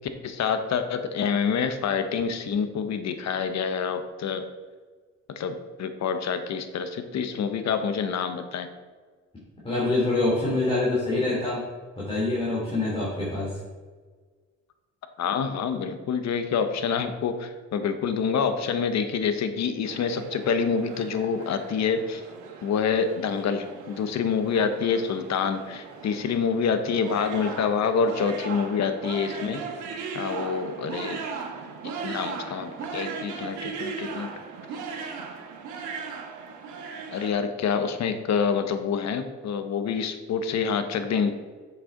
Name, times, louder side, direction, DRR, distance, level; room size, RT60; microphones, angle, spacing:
voice 1, 0.2-4.4 5.4-8.7 15.2-22.2 22.6-29.6 30.1-31.2 32.0-34.3 37.1-41.3, left 6 dB, 65° left, 9 dB, 0.9 m, -27 dB
voice 2, 9.6-11.6 12.0-13.5, left 2 dB, 20° left, -6 dB, 2.6 m, -25 dB
sound 1, 19.9-37.3, right 5 dB, 85° right, 1.1 m, -38 dB
7.7 x 6.6 x 3.8 m, 1.5 s
cardioid pair, 90°, 30 cm